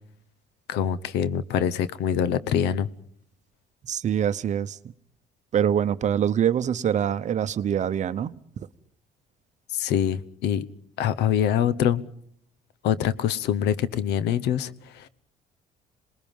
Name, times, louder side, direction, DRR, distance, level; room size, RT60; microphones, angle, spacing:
voice 1, 0.7-2.9 9.7-10.7 11.0-12.0 12.8-15.1, left 9 dB, 85° left, 0.9 m, -24 dB
voice 2, 3.8-4.8 5.5-8.3, right 9 dB, 45° right, 0.8 m, -24 dB
27.5 x 20.0 x 5.4 m
cardioid pair, 110°, 17 cm